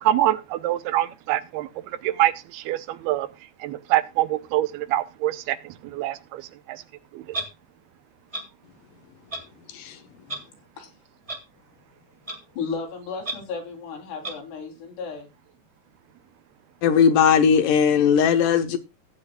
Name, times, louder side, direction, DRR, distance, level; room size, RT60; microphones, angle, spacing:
voice 1, 0.0-3.3 3.6-6.8 7.1-7.3, right 14 dB, 80° right, 2.6 m, -25 dB
Clock, 7.3-7.5 8.3-8.4 9.3-9.4 10.3-10.4 11.3-11.4 12.3-12.4 13.2-13.3 14.2-14.3, right 1 dB, 45° right, 0.4 m, -31 dB
voice 2, 9.7-10.0 16.8-18.8, left 7 dB, 70° left, 2.3 m, -18 dB
voice 3, 12.5-15.3, left 5 dB, 90° left, 5.3 m, -34 dB
17.0 x 9.3 x 2.3 m
omnidirectional pair, 4.6 m